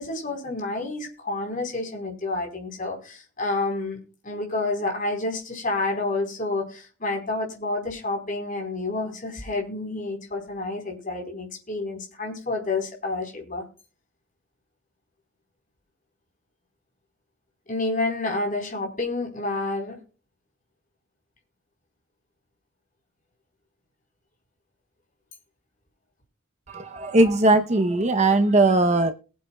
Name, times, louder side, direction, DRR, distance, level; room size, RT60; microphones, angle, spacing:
voice 1, 0.0-4.0 4.2-13.6 17.7-20.0, left 2 dB, 35° left, 4.2 m, -29 dB
voice 2, 26.7-29.1, right 2 dB, 30° right, 0.8 m, -19 dB
21.5 x 8.6 x 2.3 m
head